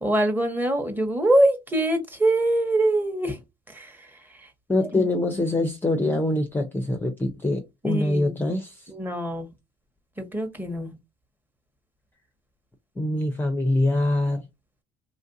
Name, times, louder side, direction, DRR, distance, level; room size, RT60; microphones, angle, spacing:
voice 1, 0.0-3.4 3.7-4.1 4.4-4.5 4.9-5.1 7.8-8.4 8.9-9.5 10.2-10.9, right 1 dB, 10° right, 1.0 m, -24 dB
voice 2, 4.7-8.9 13.0-14.5, left 1 dB, 10° left, 0.5 m, -24 dB
3.1 x 2.5 x 2.6 m
cardioid pair, 110°, 17 cm